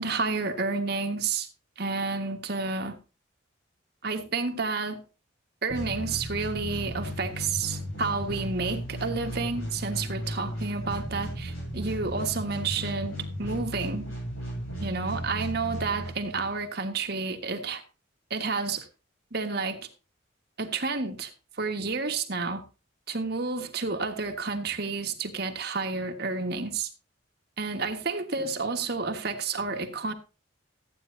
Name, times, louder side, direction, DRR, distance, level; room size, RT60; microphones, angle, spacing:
voice 1, 0.0-1.5 1.8-3.0 4.0-5.0 5.6-14.1 14.8-17.8 18.3-18.9 19.3-19.9 20.6-21.3 21.6-22.6 23.1-26.9 27.6-30.1, right 4 dB, 50° right, 1.5 m, -30 dB
sound 1, 5.7-16.6, equal, 85° left, 7.4 m, -35 dB
14.5 x 9.2 x 2.7 m
head